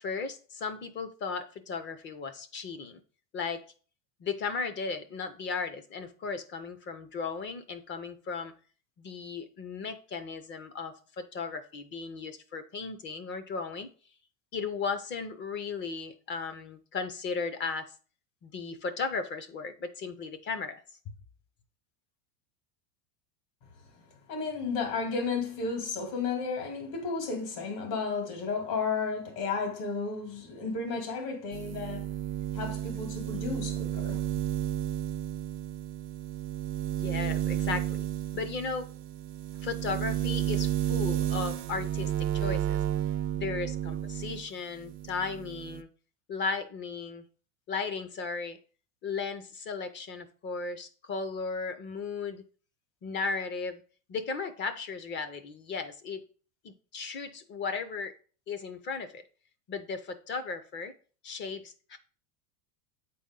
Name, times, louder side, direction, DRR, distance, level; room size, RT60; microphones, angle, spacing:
voice 1, 0.0-3.0 3.3-3.6 4.2-8.5 9.0-13.9 14.5-17.9 18.4-20.8 36.9-38.1 38.3-38.9 39.6-42.8 43.3-45.9 46.3-47.2 47.7-48.6 49.0-52.4 53.0-53.8 54.1-56.2 56.6-58.1 58.5-59.2 59.7-60.9 61.2-62.0, left 4 dB, 25° left, 0.5 m, -36 dB
voice 2, 24.3-32.1 32.5-34.3, left 4 dB, 75° left, 2.7 m, -33 dB
sound 1, 31.5-44.5 44.8-45.8, right 11 dB, 75° right, 0.7 m, -32 dB
8.0 x 4.2 x 3.7 m
supercardioid pair, 140°, 48 cm